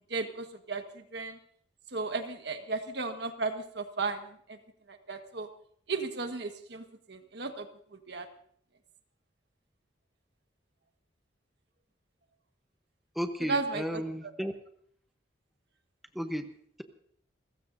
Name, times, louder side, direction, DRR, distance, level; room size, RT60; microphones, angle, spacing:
voice 1, 0.1-0.8 1.1-1.4 1.9-4.6 4.9-5.5 5.9-7.7 8.1-8.3 13.5-14.0, right 3 dB, 65° right, 6 dB, 1.5 m, -34 dB
voice 2, 13.1-14.6 16.1-16.5, equal, ahead, 6 dB, 0.9 m, -34 dB
29.0 x 15.0 x 2.7 m, 0.63 s
head